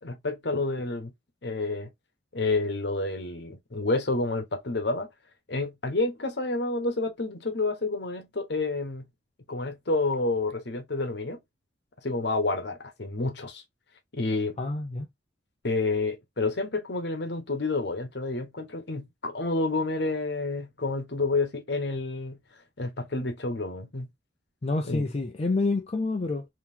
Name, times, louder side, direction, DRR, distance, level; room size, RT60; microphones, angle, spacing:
voice 1, 0.0-1.1 1.4-1.9 2.3-5.1 5.5-9.0 9.5-11.4 12.0-13.6 14.1-14.6 15.6-22.4 22.8-24.1 24.8-25.1, left 3 dB, 60° left, 1.0 m, -29 dB
voice 2, 14.6-15.1 24.6-26.5, left 3 dB, 35° left, 0.4 m, -28 dB
3.7 x 2.9 x 2.7 m
head